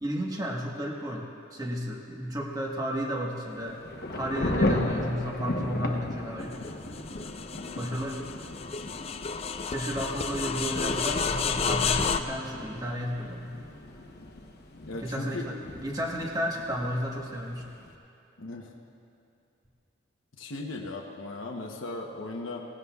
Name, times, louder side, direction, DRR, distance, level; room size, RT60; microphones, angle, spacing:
voice 1, 0.0-1.3 1.5-3.8 4.1-6.6 7.8-8.2 9.7-13.5 15.0-17.7, equal, 20° right, -1 dB, 1.3 m, -32 dB
Thunder / Rain, 3.5-17.9, left 1 dB, 55° left, 1.0 m, -36 dB
sound 1, 6.5-12.2, left 5 dB, 30° left, 0.4 m, -31 dB
voice 2, 14.9-15.5 18.4-18.7 20.3-22.7, left 2 dB, 80° left, 0 dB, 1.0 m, -37 dB
19.0 x 16.5 x 2.4 m, 2.6 s
head